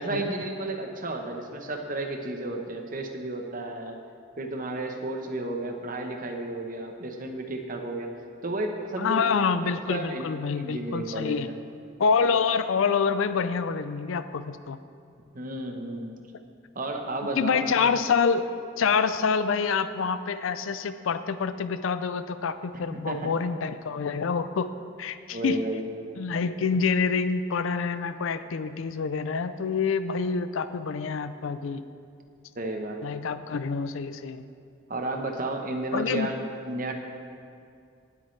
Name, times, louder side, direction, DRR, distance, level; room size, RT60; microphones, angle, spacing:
voice 1, 0.0-4.0 4.4-8.1 8.4-9.4 9.9-10.3 10.5-11.5 15.3-16.2 16.7-17.9 22.9-23.3 25.3-25.9 32.6-33.2 34.9-36.9, right 2 dB, 40° right, 3 dB, 0.9 m, -32 dB
voice 2, 9.0-11.5 12.0-14.8 17.4-18.5 18.8-24.7 25.0-25.6 26.2-31.8 33.0-34.4 35.9-36.3, left 5 dB, 75° left, 12 dB, 0.4 m, -27 dB
19.0 x 8.3 x 3.2 m, 2.4 s
head